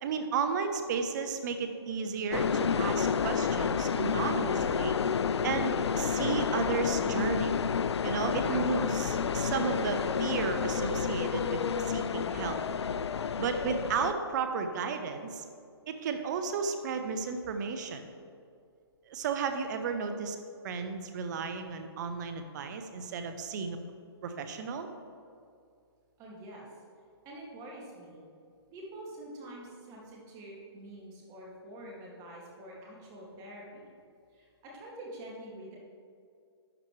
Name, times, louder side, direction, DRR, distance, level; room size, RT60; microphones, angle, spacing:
voice 1, 0.0-5.0 5.4-7.6 8.0-12.6 13.4-15.4 15.9-18.1 19.1-20.4 20.6-23.8 24.2-24.9, right 5 dB, 45° right, 7 dB, 1.0 m, -33 dB
sound 1, 2.3-14.1, left 6 dB, 80° left, 0.4 m, -30 dB
voice 2, 26.2-26.7 27.2-28.2 28.7-33.9 34.3-35.8, right 1 dB, 25° right, -3 dB, 2.4 m, -46 dB
12.0 x 8.3 x 3.3 m, 2.4 s
hypercardioid pair, 140°, 14 cm